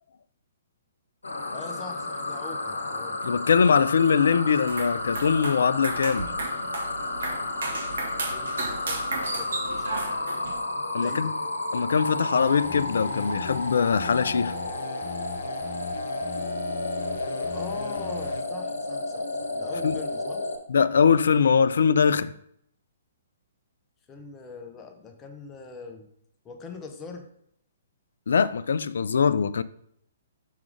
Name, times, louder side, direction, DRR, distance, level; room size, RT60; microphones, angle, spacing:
sound 1, 1.2-20.6, left 2 dB, 80° left, 1.0 m, -32 dB
voice 1, 1.5-3.2 8.3-10.1 11.0-11.3 17.5-20.4 24.1-26.1 26.4-27.3, left 4 dB, 20° left, 0.9 m, -42 dB
voice 2, 3.2-6.3 10.9-11.3 11.7-14.5 19.8-20.0 20.7-22.3 28.3-29.6, left 6 dB, 65° left, 0.3 m, -22 dB
sound 2, 4.6-10.6, right 3 dB, 65° right, 1.6 m, -34 dB
sound 3, 12.3-18.4, left 7 dB, 45° left, 0.9 m, -39 dB
6.2 x 3.6 x 5.0 m
figure-of-eight pair, 120°, 0 cm